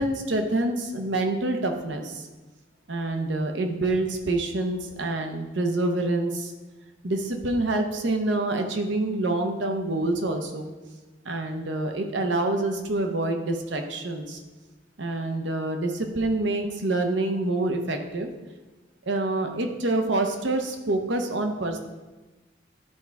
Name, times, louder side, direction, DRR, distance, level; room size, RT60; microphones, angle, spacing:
voice 1, 0.0-2.3 2.9-6.5 7.0-10.7 11.2-14.4 15.0-18.3 19.1-21.9, right 2 dB, 70° right, 5 dB, 0.9 m, -27 dB
12.0 x 4.7 x 3.4 m, 1.2 s
head